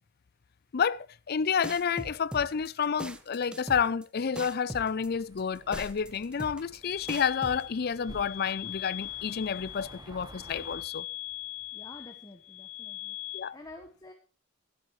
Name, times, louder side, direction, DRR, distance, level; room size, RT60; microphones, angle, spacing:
voice 1, 0.7-11.1 13.3-13.6, left 6 dB, 50° left, 0.5 m, -30 dB
sound 1, 1.6-7.6, right 1 dB, 5° right, 0.9 m, -40 dB
sound 2, 4.9-10.8, right 1 dB, 20° right, 1.3 m, -50 dB
sound 3, 6.8-13.4, left 15 dB, 80° left, 3.3 m, -41 dB
voice 2, 11.7-14.1, left 2 dB, 20° left, 1.3 m, -49 dB
23.5 x 8.3 x 3.2 m
head